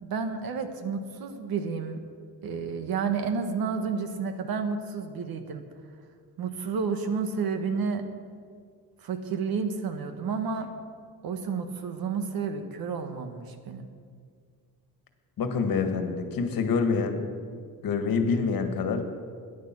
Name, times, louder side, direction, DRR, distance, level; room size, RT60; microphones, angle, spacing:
voice 1, 0.0-2.0 2.4-5.6 6.4-8.0 9.0-10.7 11.2-13.9, right 5 dB, 70° right, 7 dB, 1.5 m, -31 dB
voice 2, 15.4-17.2 17.8-19.1, left 5 dB, 65° left, 7 dB, 1.7 m, -26 dB
14.5 x 10.5 x 7.5 m, 2.1 s
wide cardioid pair, 160°, 37 cm